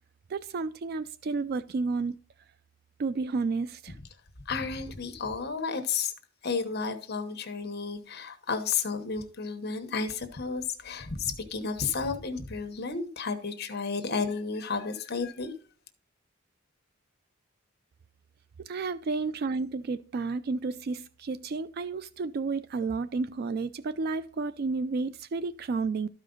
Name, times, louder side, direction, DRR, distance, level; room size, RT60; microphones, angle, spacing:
voice 1, 0.3-2.2 3.0-4.0 18.6-26.1, right 4 dB, 50° right, 0.3 m, -31 dB
voice 2, 4.5-6.1 6.4-15.5, left 5 dB, 55° left, 1.0 m, -32 dB
12.5 x 5.0 x 3.8 m
head